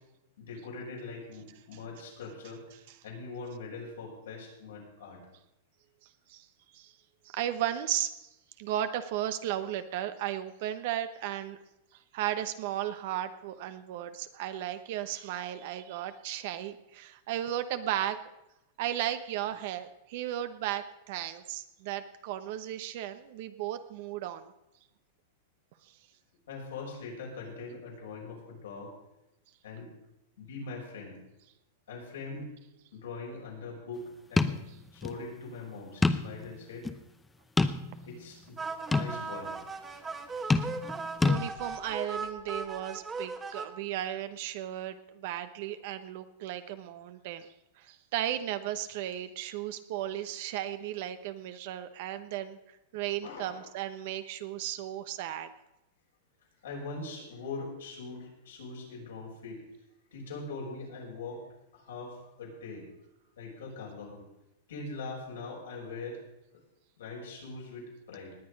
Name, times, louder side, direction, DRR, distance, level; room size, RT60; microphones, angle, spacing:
voice 1, 0.4-2.6 3.0-5.3 26.5-28.9 29.6-29.9 30.4-31.2 31.9-32.5 32.9-34.6 34.9-36.9 38.1-38.6 38.9-39.5 53.2-53.7 56.6-59.7 60.1-61.4 61.7-62.9 63.4-64.2 64.7-66.2 67.0-68.4, left 3 dB, 85° left, -2 dB, 6.3 m, -42 dB
voice 2, 7.2-11.6 12.1-18.2 18.8-24.5 25.8-26.0 40.4-40.6 41.2-47.5 47.8-52.6 52.9-55.5, right 12 dB, 60° right, 10 dB, 0.9 m, -35 dB
sound 1, 34.4-34.6 35.0-35.1 36.0-36.4 36.8-36.9 37.6-38.1 38.9-39.1 40.5-41.0 41.2-41.4, left 3 dB, 10° left, 0.7 m, -26 dB
sound 2, 38.6-43.7, right 4 dB, 15° right, 1.3 m, -38 dB
19.5 x 8.7 x 5.3 m, 0.91 s
hypercardioid pair, 135°, 0 cm